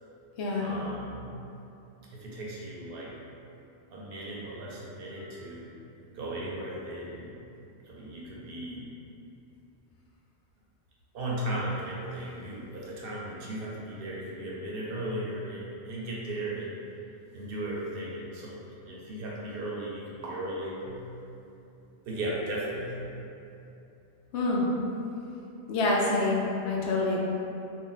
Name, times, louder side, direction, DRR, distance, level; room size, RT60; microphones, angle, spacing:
voice 1, 0.6-1.3 2.1-3.2 3.9-5.7 6.1-7.4 7.9-8.9 11.1-16.8 17.3-21.0 22.0-23.0, right 1 dB, 65° right, -4 dB, 0.7 m, -36 dB
voice 2, 24.3-24.7 25.7-27.2, left 2 dB, 80° left, -4 dB, 0.9 m, -26 dB
2.5 x 2.0 x 3.8 m, 2.8 s
omnidirectional pair, 1.1 m